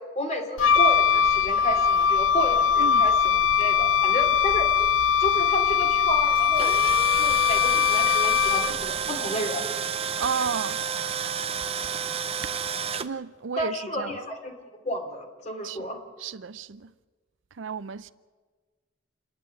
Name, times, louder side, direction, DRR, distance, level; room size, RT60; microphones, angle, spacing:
voice 1, 0.1-4.7 5.2-6.7 7.1-9.6 13.6-14.5 14.8-16.0, left 1 dB, 35° left, 3.1 m, -31 dB
Wind instrument woodwind instrument, 0.6-8.9, left 7 dB, 75° left, 0.6 m, -21 dB
Tools, 6.4-13.1, right 7 dB, 30° right, 0.7 m, -31 dB
voice 2, 10.2-10.8 13.0-14.2 15.6-15.8 16.2-16.9 17.5-18.1, right 6 dB, 70° right, 0.5 m, -32 dB
28.0 x 10.5 x 9.0 m
head